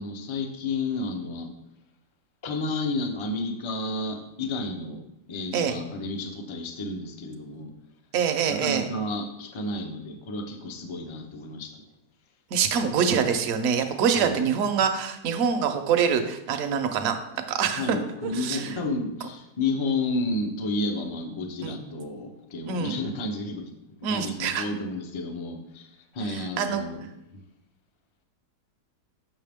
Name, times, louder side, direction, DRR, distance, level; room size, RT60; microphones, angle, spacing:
voice 1, 0.0-1.5 2.4-5.0 5.3-7.7 8.5-11.8 14.1-14.4 17.7-23.7 24.0-27.0 27.3-27.4, left 2 dB, 40° left, 4 dB, 0.4 m, -31 dB
voice 2, 8.1-8.9 12.5-17.2 17.5-18.7 21.6-21.8 22.7-23.0 24.0-24.6 26.3-26.8, right 7 dB, 65° right, 6 dB, 1.1 m, -25 dB
7.3 x 5.8 x 3.5 m, 0.86 s
omnidirectional pair, 1.7 m